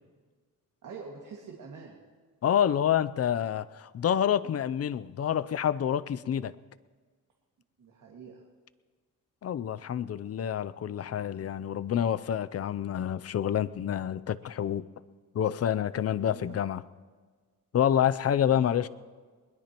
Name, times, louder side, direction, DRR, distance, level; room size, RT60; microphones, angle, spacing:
voice 1, 0.8-2.0 7.8-8.4 16.3-16.6 18.4-18.9, right 5 dB, 65° right, -2 dB, 2.1 m, -45 dB
voice 2, 2.4-6.5 9.4-14.9 15.3-16.8 17.7-18.9, left 9 dB, 45° left, 17 dB, 0.6 m, -28 dB
22.0 x 20.5 x 3.0 m, 1.5 s
cardioid pair, 100°, 34 cm